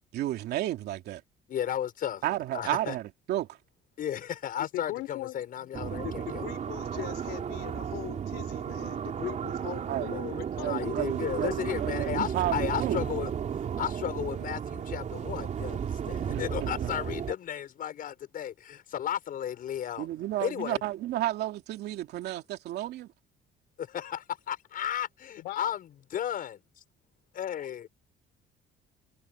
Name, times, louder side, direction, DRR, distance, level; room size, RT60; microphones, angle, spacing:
voice 1, 0.1-1.2 2.2-3.6 9.9-10.2 10.6-13.0 16.3-16.9 20.0-23.1, right 14 dB, 75° right, 2.8 m, -32 dB
voice 2, 1.5-2.2 2.5-2.9 4.0-6.4 10.6-13.3 13.8-20.1 20.4-20.8 23.8-26.6 27.4-27.9, left 10 dB, 55° left, 6.5 m, -34 dB
voice 3, 4.6-10.9 11.4-11.8 25.4-25.7, left 18 dB, 90° left, 4.3 m, -40 dB
sound 1, 5.7-17.3, right 8 dB, 45° right, 3.7 m, -34 dB
cardioid pair, 110°, 17 cm